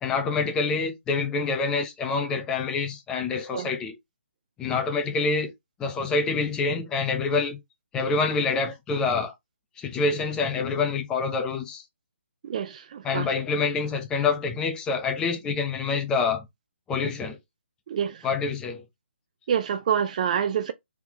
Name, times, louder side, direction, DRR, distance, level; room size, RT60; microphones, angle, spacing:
voice 1, 0.0-3.9 4.6-5.5 5.8-7.6 7.9-9.3 9.8-11.8 13.0-16.5 16.9-17.4 18.2-18.8, left 4 dB, 10° left, 0.8 m, -26 dB
voice 2, 12.4-13.3 17.9-18.3 19.5-20.7, right 8 dB, 35° right, 0.4 m, -27 dB
4.4 x 3.6 x 2.9 m
hypercardioid pair, 155°, 7 cm